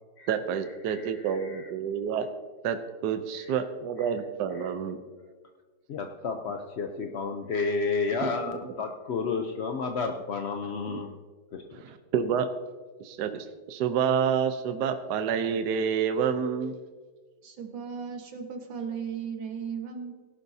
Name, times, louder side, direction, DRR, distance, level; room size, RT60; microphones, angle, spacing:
voice 1, 0.3-2.3 2.6-5.0 8.2-8.3 10.9-11.0 11.7-12.5 13.0-16.7, right 7 dB, 70° right, 9 dB, 1.3 m, -28 dB
voice 2, 0.9-1.7 3.4-3.5 4.6-4.7 5.9-11.1 11.5-11.6, left 4 dB, 60° left, 4 dB, 0.7 m, -31 dB
voice 3, 17.4-20.1, right 6 dB, 85° right, 4 dB, 2.1 m, -36 dB
18.0 x 11.5 x 2.8 m, 1.5 s
omnidirectional pair, 2.0 m